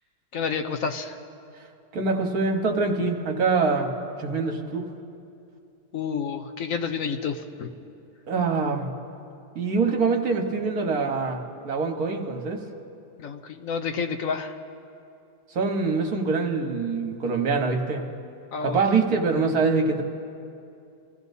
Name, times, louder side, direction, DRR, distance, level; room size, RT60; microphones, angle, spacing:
voice 1, 0.3-1.2 5.9-7.7 13.2-14.5 18.5-18.8, left 6 dB, 60° left, 7 dB, 1.0 m, -29 dB
voice 2, 1.9-3.9 4.2-4.9 8.3-8.9 9.5-12.6 15.5-18.1 18.6-20.0, right 4 dB, 60° right, 3 dB, 1.7 m, -24 dB
28.0 x 15.5 x 2.7 m, 2.6 s
omnidirectional pair, 1.8 m